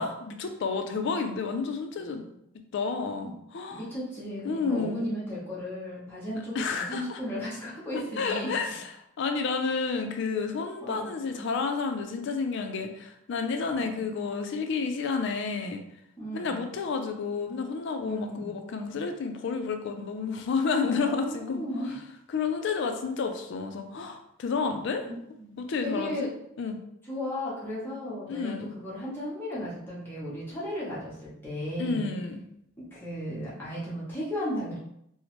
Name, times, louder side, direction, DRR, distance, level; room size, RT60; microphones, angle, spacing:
voice 1, 0.0-2.3 2.7-3.8 4.4-5.1 6.5-7.2 8.2-8.9 9.2-15.8 16.3-21.6 22.3-25.0 25.6-26.3 26.6-26.8 28.3-28.7 31.8-32.4, left 4 dB, 55° left, 5 dB, 0.3 m, -30 dB
voice 2, 3.7-8.5 10.8-11.1 13.7-14.0 16.2-16.6 18.0-18.5 20.8-22.0 25.0-25.6 25.8-26.3 27.1-32.1 32.8-34.8, equal, 10° left, -8 dB, 0.7 m, -35 dB
2.9 x 2.0 x 2.9 m, 0.76 s
head